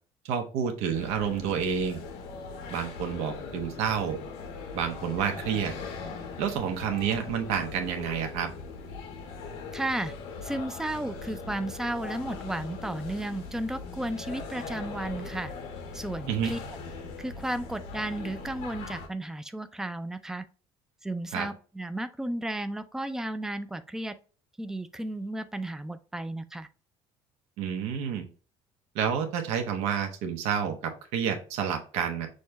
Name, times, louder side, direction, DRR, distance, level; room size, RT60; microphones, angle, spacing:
voice 1, 0.2-2.0 2.7-4.2 4.7-5.7 6.4-8.5 16.3-16.5 21.3-21.5 27.6-28.3 28.9-32.3, right 7 dB, 80° right, 4 dB, 0.7 m, -29 dB
sound 1, 0.9-19.1, left 4 dB, 85° left, 1.0 m, -40 dB
voice 2, 9.7-10.1 10.4-15.5 15.9-16.6 17.2-20.4 21.0-24.1 24.6-26.7, right 1 dB, 5° right, 10 dB, 0.3 m, -33 dB
6.3 x 2.1 x 3.4 m, 0.38 s
cardioid pair, 130°, 11 cm